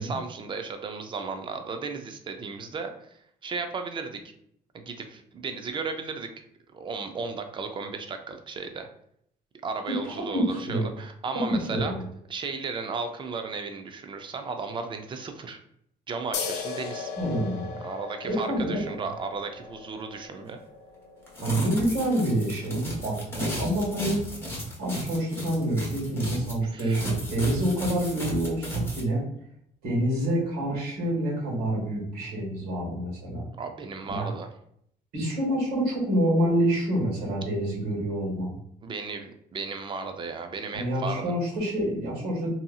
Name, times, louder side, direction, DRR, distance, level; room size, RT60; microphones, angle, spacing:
voice 1, 0.0-2.9 3.4-4.2 4.7-6.3 6.7-8.9 9.6-11.9 12.3-15.6 16.1-17.1 17.8-20.6 26.6-27.0 33.6-34.5 38.8-41.3, right 4 dB, 30° right, 6 dB, 0.4 m, -35 dB
voice 2, 9.9-10.9 11.3-12.0 17.2-17.7 18.3-19.1 21.4-24.2 24.8-29.2 29.8-33.4 34.1-34.3 35.1-38.5 40.7-42.5, right 1 dB, 70° right, -4 dB, 1.5 m, -27 dB
sound 1, 16.3-23.5, left 5 dB, 85° left, 0.4 m, -39 dB
sound 2, 21.3-26.5 26.8-29.0, right 1 dB, 15° left, 0.8 m, -34 dB
2.7 x 2.7 x 2.3 m, 0.70 s
cardioid pair, 110°, 17 cm